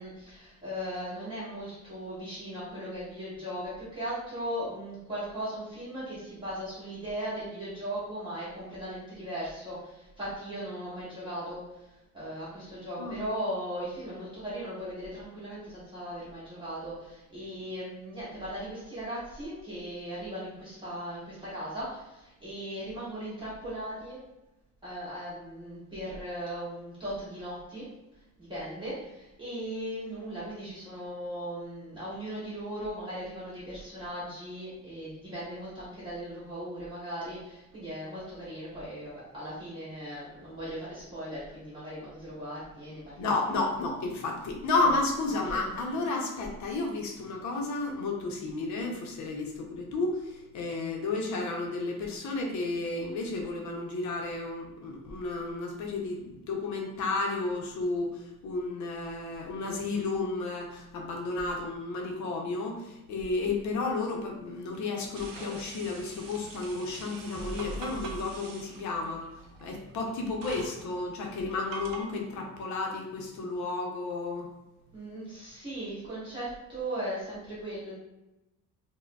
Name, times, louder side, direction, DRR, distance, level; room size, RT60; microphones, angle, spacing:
voice 1, 0.0-11.9 12.1-24.2 24.8-27.9 28.4-43.4 45.4-45.7 74.9-77.9, equal, 15° right, -11 dB, 1.3 m, -38 dB
voice 2, 43.2-69.3 69.6-74.5, left 3 dB, 60° left, 1 dB, 0.7 m, -32 dB
sound 1, 65.1-72.0, right 3 dB, 85° right, 0.6 m, -43 dB
4.6 x 2.1 x 2.2 m, 0.95 s
cardioid pair, 180°, 33 cm